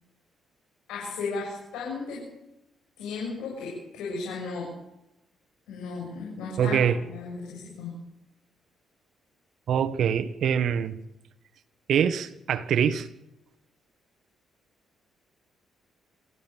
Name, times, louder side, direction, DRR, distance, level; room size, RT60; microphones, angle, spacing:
voice 1, 0.9-2.3 3.0-4.7 5.7-6.7 7.0-7.9, left 4 dB, 90° left, 7.7 m, -35 dB
voice 2, 6.6-7.0 9.7-11.0 11.9-13.1, right 8 dB, 70° right, 1.4 m, -24 dB
27.5 x 14.0 x 7.5 m
cardioid pair, 90°, 0 cm